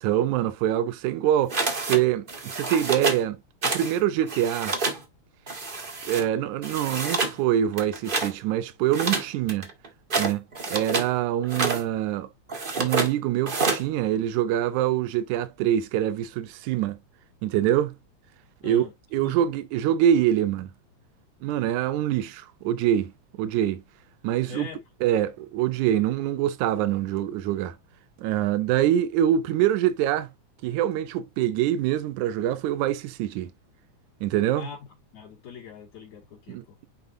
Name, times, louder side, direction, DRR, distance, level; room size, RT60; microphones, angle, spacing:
voice 1, 0.0-4.7 6.1-9.7 10.2-12.3 12.8-17.0 17.4-18.0 18.6-20.7 21.4-23.1 23.4-23.8 24.2-24.7 25.0-27.8 28.2-30.3 30.6-33.5 34.2-34.7 36.5-36.9, right 11 dB, 80° right, 2.2 m, -25 dB
sound 1, 1.5-2.0 2.3-3.2 3.6-4.0 4.2-5.0 5.5-6.2 6.6-7.4 7.7-8.3 8.9-11.1 11.4-11.8 12.5-13.1 13.4-13.8, right 3 dB, 55° right, 0.5 m, -28 dB
voice 2, 24.5-24.8 34.6-34.8 35.1-36.8, left 6 dB, 70° left, 3.3 m, -41 dB
9.6 x 4.3 x 2.7 m
omnidirectional pair, 3.4 m